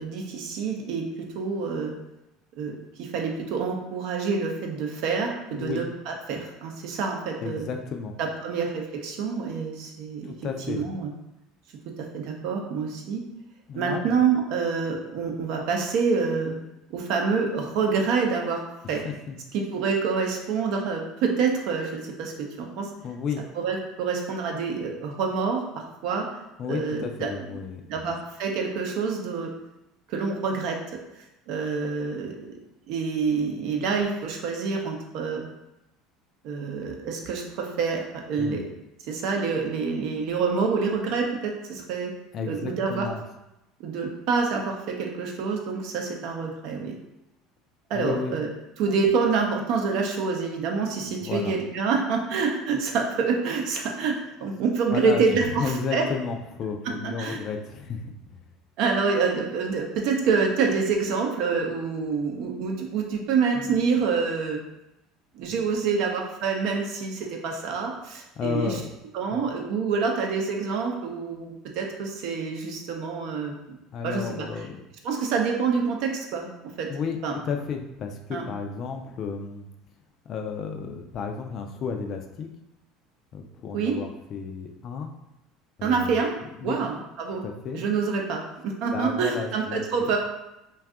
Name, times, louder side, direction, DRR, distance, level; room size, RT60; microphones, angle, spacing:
voice 1, 0.0-1.9 2.6-7.7 8.2-10.3 10.7-11.1 12.1-13.2 13.7-16.6 16.9-18.6 18.9-19.0 19.5-22.9 23.6-25.6 26.0-26.3 26.7-27.3 27.9-29.5 30.1-30.8 31.5-32.6 32.9-35.4 36.4-38.6 39.1-42.1 42.5-43.1 43.8-47.0 47.9-48.5 48.8-56.0 57.2-57.4 58.8-64.6 65.3-68.7 69.1-73.6 74.0-74.5 75.0-76.5 76.8-76.9 77.2-77.3 78.3-78.4 83.7-84.0 85.8-86.4 86.6-87.4 87.7-90.2, right 5 dB, 60° right, 1 dB, 0.5 m, -27 dB
voice 2, 5.5-5.8 7.4-8.1 10.2-10.9 13.7-14.1 19.0-19.3 23.0-23.4 26.6-28.1 38.4-38.6 42.3-43.2 47.9-48.4 51.2-51.5 54.9-58.1 58.3-58.4 63.5-63.8 68.4-68.9 69.3-69.4 73.9-74.8 76.9-77.2 77.4-79.6 80.3-82.5 83.3-85.1 85.8-86.2 86.6-86.8 87.4-87.8 88.9-90.1, left 5 dB, 50° left, 5 dB, 0.4 m, -32 dB
2.6 x 2.3 x 3.5 m, 0.91 s
hypercardioid pair, 75°, 0 cm